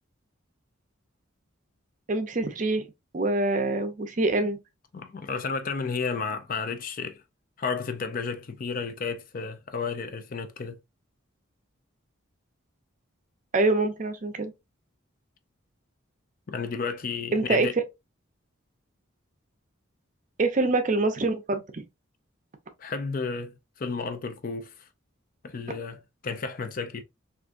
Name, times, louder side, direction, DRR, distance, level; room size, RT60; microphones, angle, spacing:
voice 1, 2.1-2.9 3.1-4.6 13.5-14.5 17.3-17.7 20.4-21.8, right 2 dB, 35° right, 0.5 m, -25 dB
voice 2, 4.9-7.2 7.6-10.8 16.5-17.7 22.8-24.7 25.4-27.0, left 5 dB, 40° left, 0.4 m, -32 dB
3.6 x 2.5 x 2.5 m
head